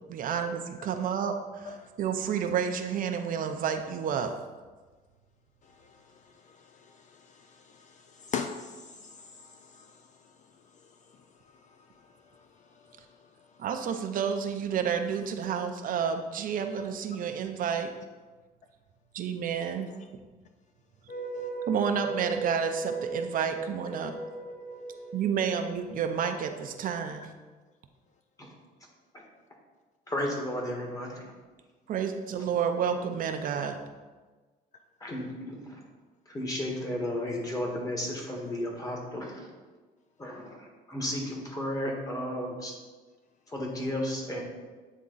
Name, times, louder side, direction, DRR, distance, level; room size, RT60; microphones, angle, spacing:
voice 1, 0.1-4.3 13.6-17.9 19.1-19.9 21.6-24.2 25.1-27.3 31.9-33.8, right 7 dB, 55° right, 6 dB, 0.6 m, -30 dB
voice 2, 6.2-10.0 19.9-20.0, left 6 dB, 45° left, 6 dB, 0.4 m, -41 dB
sound 1, 21.1-26.3, right 3 dB, 75° left, 1.2 m, -37 dB
voice 3, 30.1-31.3 35.0-35.8 36.3-39.5 40.2-42.7 43.5-44.4, left 1 dB, 20° left, 0 dB, 1.6 m, -33 dB
8.7 x 3.6 x 3.9 m, 1.3 s
cardioid pair, 110°, 17 cm